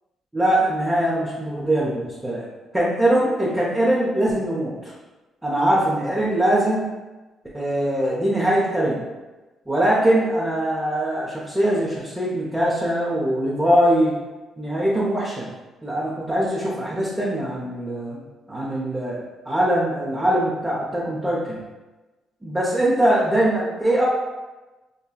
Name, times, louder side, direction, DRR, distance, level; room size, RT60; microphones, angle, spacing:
voice 1, 0.3-2.5 2.7-4.9 5.4-6.9 7.5-9.1 9.7-14.1 14.6-15.5 15.8-18.2 18.5-21.6 22.4-24.1, right 1 dB, 10° right, -7 dB, 0.8 m, -22 dB
5.3 x 2.2 x 2.4 m, 1.1 s
cardioid pair, 90°, 0 cm